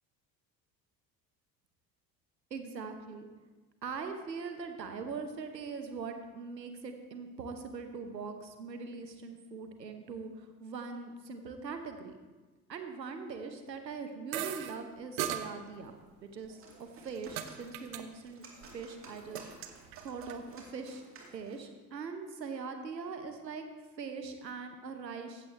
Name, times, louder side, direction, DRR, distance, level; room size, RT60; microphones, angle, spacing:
voice 1, 2.5-3.3 3.8-12.2 12.7-18.4 18.7-19.5 20.0-21.0 21.3-23.6 24.0-25.5, right 5 dB, 80° right, 7 dB, 1.0 m, -42 dB
sound 1, 14.3-14.7 15.2-15.4 16.4-17.5 17.7-18.0 18.3-18.8 19.1-20.4, right 11 dB, 55° right, 0.8 m, -37 dB
sound 2, 16.4-21.7, right 3 dB, 25° right, 2.2 m, -55 dB
14.5 x 8.1 x 3.3 m, 1.3 s
figure-of-eight pair, 60°, 49 cm